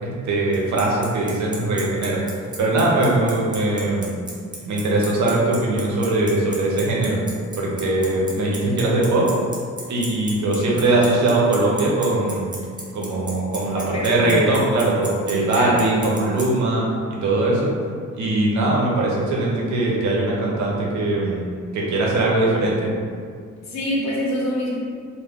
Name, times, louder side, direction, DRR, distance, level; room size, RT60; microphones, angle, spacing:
voice 1, 0.0-4.2 4.7-7.2 7.6-9.3 9.9-12.5 12.9-17.7 18.2-21.4 21.7-22.9, right 2 dB, 70° right, -4 dB, 0.7 m, -21 dB
Bicycle, 0.5-16.4, right 2 dB, 15° right, 0.6 m, -33 dB
voice 2, 13.8-14.4 15.3-15.8 23.7-24.8, left 1 dB, 65° left, -4 dB, 0.8 m, -26 dB
2.2 x 2.2 x 3.5 m, 2.1 s
cardioid pair, 90°, 30 cm